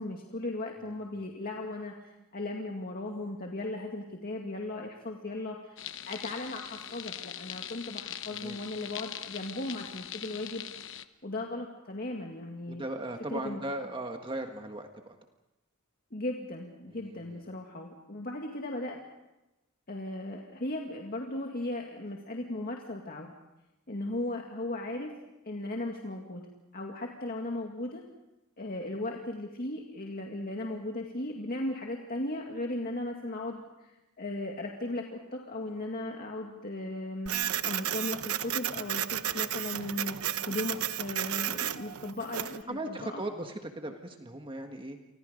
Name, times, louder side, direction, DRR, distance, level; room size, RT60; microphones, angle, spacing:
voice 1, 0.0-5.8 6.1-10.6 11.2-12.8 13.3-13.6 16.1-19.0 19.9-23.3 23.9-25.1 25.5-26.4 26.7-28.0 28.6-37.3 37.6-40.2 40.5-43.2, left 2 dB, 45° left, 1 dB, 2.2 m, -37 dB
voice 2, 0.8-1.1 8.3-8.6 12.7-15.1 16.8-17.4 41.5-41.7 42.7-45.0, right 1 dB, 25° right, 4 dB, 1.6 m, -38 dB
sound 1, 5.8-11.0, left 10 dB, 60° left, 1.0 m, -42 dB
Printer, 37.3-42.6, right 10 dB, 90° right, 0.9 m, -33 dB
30.0 x 25.0 x 5.2 m, 0.97 s
head